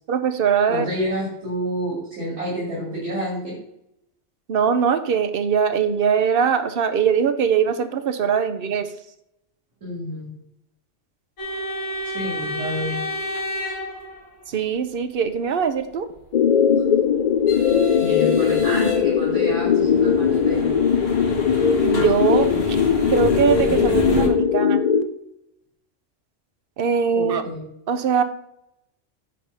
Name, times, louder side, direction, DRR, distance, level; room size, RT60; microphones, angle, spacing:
voice 1, 0.1-0.9 4.5-8.9 14.5-16.1 21.8-22.5 23.1-24.8 26.8-27.4 27.9-28.2, right 7 dB, 55° right, 10 dB, 0.8 m, -21 dB
voice 2, 0.7-3.6 9.8-10.3 12.0-13.0 18.0-20.7 27.1-27.7, equal, 75° right, -6 dB, 2.8 m, -29 dB
sound 1, 11.4-14.6 16.6-24.3, left 1 dB, 85° left, 1.9 m, -30 dB
sound 2, 16.3-25.0, left 7 dB, 55° left, 0.4 m, -19 dB
9.5 x 3.6 x 5.5 m, 0.80 s
omnidirectional pair, 1.2 m